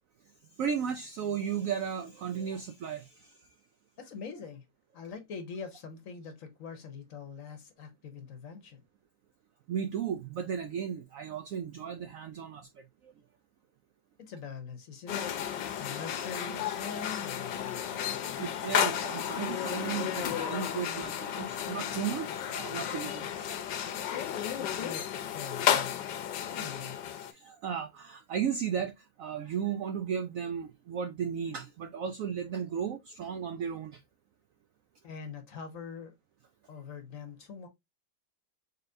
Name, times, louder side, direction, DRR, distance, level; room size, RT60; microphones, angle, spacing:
voice 1, 0.6-3.3 9.7-13.1 18.4-23.3 27.3-34.0, right 8 dB, 75° right, 0.7 m, -35 dB
voice 2, 4.0-4.6 4.9-8.8 14.2-15.3 15.8-18.0 24.6-25.0 25.3-26.0 26.5-27.0 35.0-36.1 36.7-37.7, left 5 dB, 55° left, 1.1 m, -43 dB
sound 1, 15.1-27.3, left 9 dB, 80° left, 1.3 m, -33 dB
4.0 x 3.7 x 2.6 m
omnidirectional pair, 1.9 m